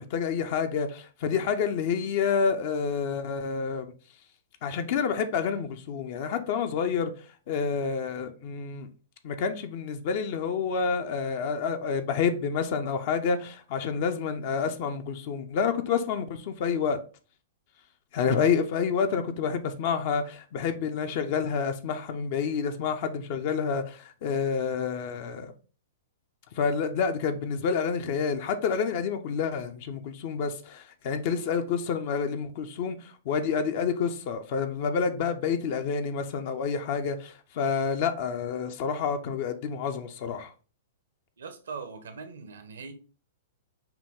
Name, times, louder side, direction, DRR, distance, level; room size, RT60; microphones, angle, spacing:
voice 1, 0.0-3.9 4.6-8.9 9.2-17.0 18.1-25.5 26.5-40.5, left 6 dB, 50° left, 0.5 m, -28 dB
voice 2, 41.4-42.9, right 5 dB, 70° right, 0.8 m, -40 dB
5.7 x 2.3 x 3.5 m
figure-of-eight pair, 110°, 0 cm